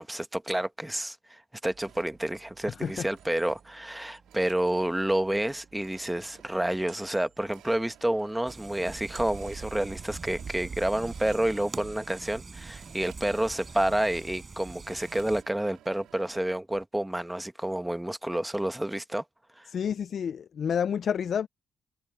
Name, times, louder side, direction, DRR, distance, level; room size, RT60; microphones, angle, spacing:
voice 1, 0.0-19.2 19.6-19.7, right 1 dB, 5° right, 1.2 m, -29 dB
sound 1, 1.7-8.5 8.9-14.9 15.9-16.3 16.7-16.8, right 6 dB, 50° right, 2.3 m, -48 dB
sound 2, 1.8-16.5, right 12 dB, 85° right, 2.5 m, -56 dB
voice 2, 2.7-3.1 19.7-21.5, left 7 dB, 55° left, 0.5 m, -29 dB
sound 3, 8.5-15.4, right 3 dB, 30° right, 5.6 m, -45 dB
cardioid pair, 90°, 0 cm